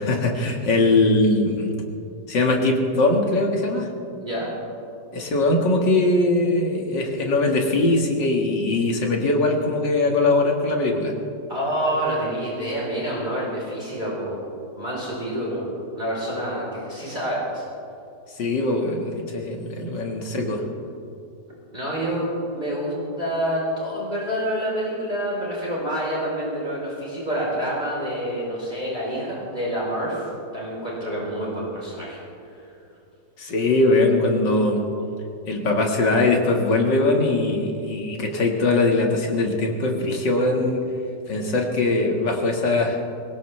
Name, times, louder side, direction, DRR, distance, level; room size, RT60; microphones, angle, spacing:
voice 1, 0.0-1.7 2.3-3.9 5.1-11.1 18.4-20.6 33.4-34.8 35.5-40.8 41.3-43.0, left 2 dB, 80° left, 1 dB, 2.5 m, -21 dB
voice 2, 4.2-4.5 11.5-14.4 14.8-15.7 15.9-17.6 21.7-30.3 30.5-32.2 32.5-32.6, equal, 25° right, -5 dB, 4.1 m, -27 dB
22.0 x 19.0 x 3.3 m, 2.7 s
omnidirectional pair, 1.9 m